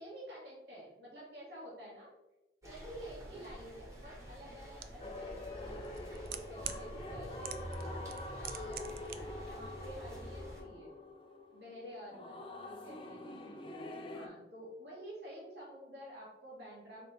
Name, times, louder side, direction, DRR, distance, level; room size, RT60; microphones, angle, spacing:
voice 1, 0.0-2.1 2.6-11.0 11.5-12.4 12.8-13.6 14.1-17.1, equal, 75° right, -5 dB, 1.6 m, -50 dB
sound 1, 2.6-10.6, equal, 20° right, 1.1 m, -47 dB
sound 2, 4.8-4.9 5.8-6.8 7.4-7.8 8.1-9.2 9.4-9.5, right 10 dB, 55° right, 0.3 m, -41 dB
sound 3, 5.0-14.3, left 2 dB, 30° left, 0.4 m, -46 dB
4.2 x 3.0 x 4.1 m, 0.99 s
head